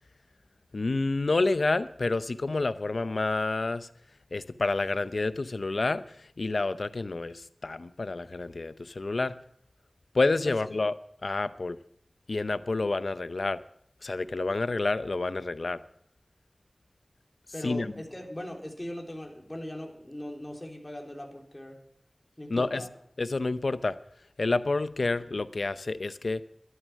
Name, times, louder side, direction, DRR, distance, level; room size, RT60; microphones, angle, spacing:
voice 1, 0.7-3.9 4.3-6.0 6.4-9.3 10.1-10.9 11.2-11.8 12.3-13.6 14.0-15.8 17.6-17.9 22.5-22.8 23.2-24.0 24.4-26.4, left 3 dB, 75° left, 0.7 m, -28 dB
voice 2, 17.5-21.8 22.4-22.9, left 1 dB, 25° left, 3.8 m, -39 dB
13.0 x 12.5 x 6.3 m
wide cardioid pair, 40°, 0 cm